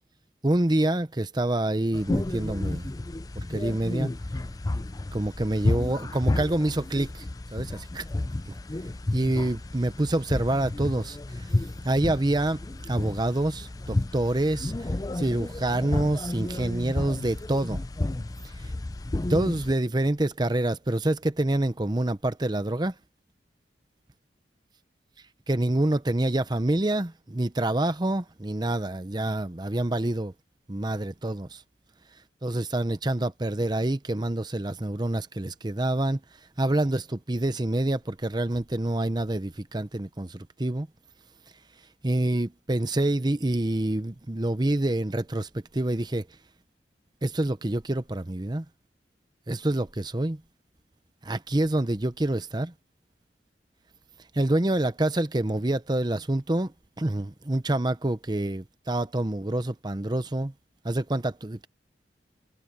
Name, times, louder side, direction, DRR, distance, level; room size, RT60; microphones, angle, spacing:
voice 1, 0.4-2.9 3.4-4.1 5.1-7.3 7.5-8.0 8.5-8.6 9.1-11.5 11.8-17.8 18.4-18.7 19.3-22.9 25.5-30.3 30.7-31.6 32.4-36.2 36.6-40.9 42.0-46.3 47.2-48.6 49.5-50.4 51.2-52.7 54.3-60.5 60.8-61.7, right 1 dB, 25° right, 0.8 m, -27 dB
sound 1, 1.9-19.7, left 2 dB, 20° left, 0.4 m, -31 dB
head